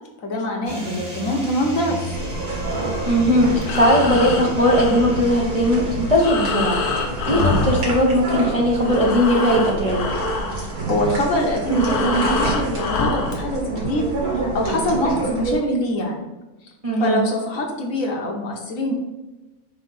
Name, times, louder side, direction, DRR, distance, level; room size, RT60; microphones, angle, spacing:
voice 1, 0.2-2.1 7.3-7.6 10.8-14.0 14.3-16.2 17.0-18.9, left 1 dB, 65° left, 1 dB, 1.4 m, -24 dB
sound 1, 0.7-8.2, right 1 dB, 60° right, 2.3 m, -34 dB
sound 2, 2.1-15.5, right 3 dB, 75° right, 2.2 m, -27 dB
voice 2, 3.0-6.8 7.3-10.1 16.8-17.2, equal, 30° right, -3 dB, 0.8 m, -18 dB
Breathing, 3.5-8.5 8.8-13.4, left 4 dB, 80° left, 1.4 m, -26 dB
5.2 x 4.6 x 4.0 m, 1.1 s
omnidirectional pair, 1.6 m